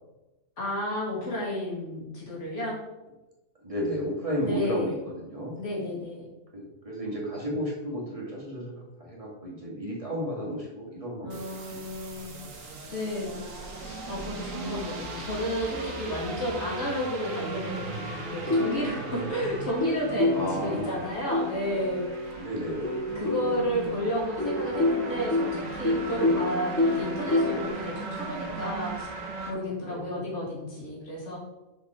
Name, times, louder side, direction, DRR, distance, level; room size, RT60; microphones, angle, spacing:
voice 1, 0.6-2.8 4.4-5.0 5.6-6.3 11.2-13.3 13.8-22.4 23.2-29.1 29.5-31.4, equal, 55° left, -4 dB, 2.7 m, -32 dB
voice 2, 3.6-5.6 6.5-11.4 11.7-11.8 20.3-21.0 22.4-23.0 29.9-30.2, equal, 25° right, -4 dB, 2.0 m, -33 dB
sound 1, 11.3-29.5, right 4 dB, 70° right, 1.6 m, -38 dB
sound 2, 18.5-22.3 22.8-27.7, left 2 dB, 20° left, 0.5 m, -28 dB
6.3 x 5.1 x 4.8 m, 1.0 s
omnidirectional pair, 1.5 m